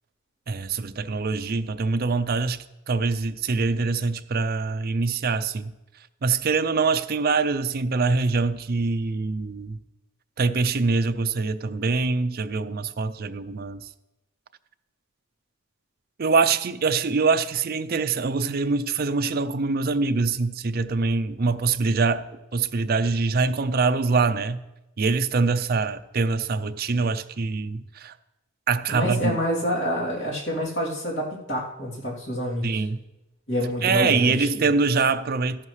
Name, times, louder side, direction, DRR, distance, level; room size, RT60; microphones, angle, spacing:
voice 1, 0.5-2.6 2.9-5.7 6.2-9.8 10.4-13.8 16.2-22.2 22.5-24.6 25.0-28.1 28.7-29.4 32.6-33.0 33.8-35.7, right 4 dB, 45° right, 0.5 m, -24 dB
voice 2, 28.9-32.8 33.5-34.6, equal, 55° left, 3.0 m, -27 dB
13.5 x 11.0 x 3.2 m
head